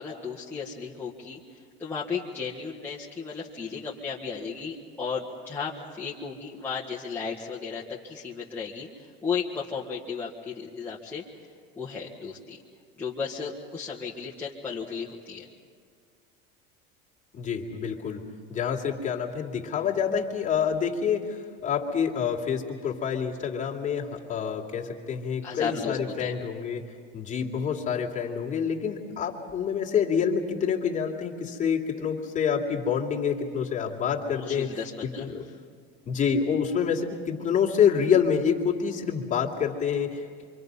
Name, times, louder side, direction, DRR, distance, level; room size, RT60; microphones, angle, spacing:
voice 1, 0.0-11.2 11.7-12.6 13.0-15.5 25.4-26.3 34.3-35.2, left 5 dB, 5° left, -6 dB, 1.6 m, -35 dB
voice 2, 17.3-18.2 18.5-26.8 27.1-34.7 35.2-35.4 36.1-40.4, left 7 dB, 25° left, -2 dB, 2.7 m, -27 dB
27.5 x 25.0 x 5.5 m, 2.1 s
cardioid pair, 155°, 29 cm